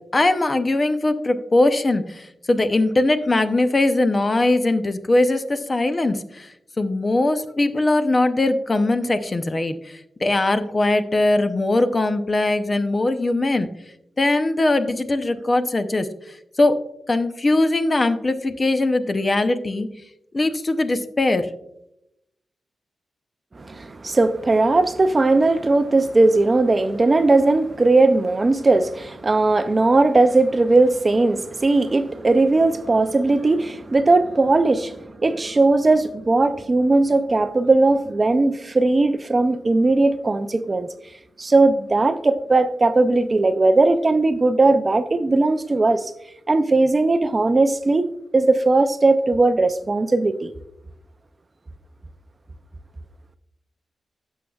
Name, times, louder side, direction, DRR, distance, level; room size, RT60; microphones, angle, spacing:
voice 1, 0.0-6.5 6.8-13.7 14.2-16.1 16.6-19.9 20.3-21.5, left 2 dB, 25° left, 0.6 m, -21 dB
voice 2, 23.6-40.9 41.4-46.1 46.5-50.5, right 2 dB, 25° right, 0.4 m, -18 dB
16.5 x 6.3 x 2.3 m
wide cardioid pair, 140°, 0 cm